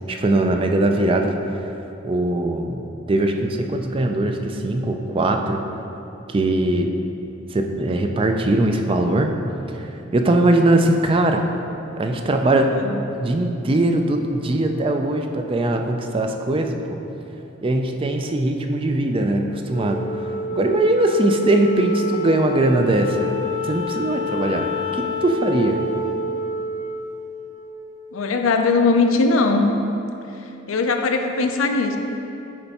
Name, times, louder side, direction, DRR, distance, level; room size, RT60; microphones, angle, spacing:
voice 1, 0.1-1.7 2.0-2.8 3.1-5.6 6.3-6.9 7.5-9.4 9.7-11.4 12.0-12.8 13.1-17.0 17.6-20.1 20.5-25.8, right 2 dB, 25° right, 4 dB, 0.4 m, -21 dB
Wind instrument woodwind instrument, 19.7-28.3, left 1 dB, 35° left, 0.7 m, -28 dB
voice 2, 28.1-29.7 30.7-32.0, left 3 dB, 85° left, 5 dB, 0.5 m, -19 dB
9.6 x 3.4 x 4.1 m, 2.9 s
head